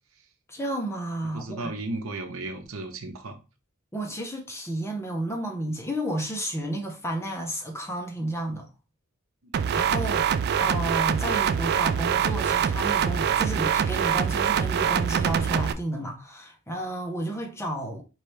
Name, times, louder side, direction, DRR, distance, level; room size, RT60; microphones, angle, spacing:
voice 1, 0.5-1.7 3.9-8.7 9.7-10.3 10.6-18.0, right 1 dB, 15° left, 1.0 m, -32 dB
voice 2, 1.3-3.4 9.4-9.8, right 2 dB, 75° right, 0.9 m, -35 dB
sound 1, 9.5-15.7, right 8 dB, 50° right, 0.3 m, -24 dB
4.7 x 2.9 x 3.3 m
head